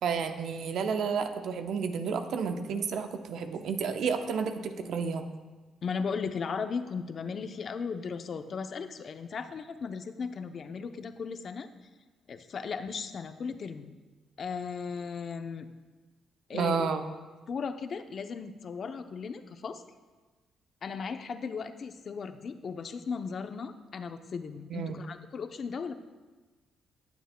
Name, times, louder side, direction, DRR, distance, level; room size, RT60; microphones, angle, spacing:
voice 1, 0.0-5.2 16.5-17.0 24.7-25.0, right 6 dB, 70° right, 7 dB, 0.7 m, -31 dB
voice 2, 5.8-11.7 12.3-13.9 14.4-15.7 16.5-16.9 17.5-19.8 20.8-25.9, left 5 dB, 50° left, 9 dB, 0.6 m, -36 dB
18.5 x 7.1 x 2.2 m, 1.3 s
cardioid pair, 90°, 0 cm